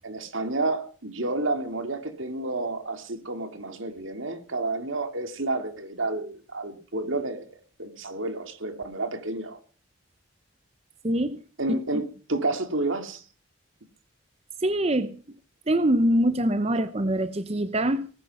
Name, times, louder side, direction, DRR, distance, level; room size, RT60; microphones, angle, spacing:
voice 1, 0.0-7.5 7.8-9.6 11.6-13.2, right 2 dB, 75° right, 2.6 m, -30 dB
voice 2, 11.0-11.4 11.7-11.8 14.6-15.2 15.7-18.1, right 1 dB, 30° right, 0.7 m, -24 dB
19.0 x 10.5 x 5.5 m
head